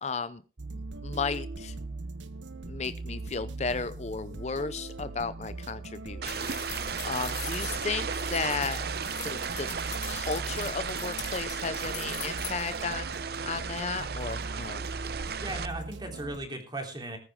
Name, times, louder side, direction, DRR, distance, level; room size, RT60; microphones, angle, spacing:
voice 1, 0.0-0.4 1.0-1.7 2.7-8.9 9.2-9.8 10.1-14.8, left 4 dB, 40° left, 14 dB, 0.6 m, -34 dB
sound 1, 0.6-16.4, right 2 dB, 85° right, 1.1 m, -40 dB
sound 2, 6.2-15.7, right 6 dB, 55° right, 0.7 m, -35 dB
sound 3, 6.3-12.8, left 13 dB, 80° left, 2.4 m, -43 dB
voice 2, 15.4-17.2, right 1 dB, 25° right, 3 dB, 3.6 m, -37 dB
19.5 x 9.9 x 3.7 m, 0.35 s
head